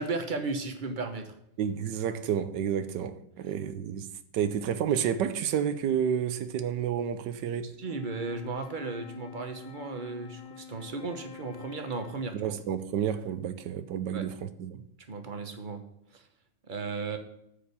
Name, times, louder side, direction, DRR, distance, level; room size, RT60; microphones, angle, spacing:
voice 1, 0.0-1.3 7.6-12.5 14.1-14.3 15.1-15.8 16.1-16.2 16.7-17.2, right 3 dB, 35° right, 0.9 m, -35 dB
voice 2, 1.6-7.7 12.3-14.8, right 8 dB, 75° right, 1.3 m, -30 dB
Wind instrument woodwind instrument, 7.8-12.6, left 7 dB, 75° left, 1.4 m, -47 dB
8.7 x 5.0 x 6.9 m
omnidirectional pair, 2.0 m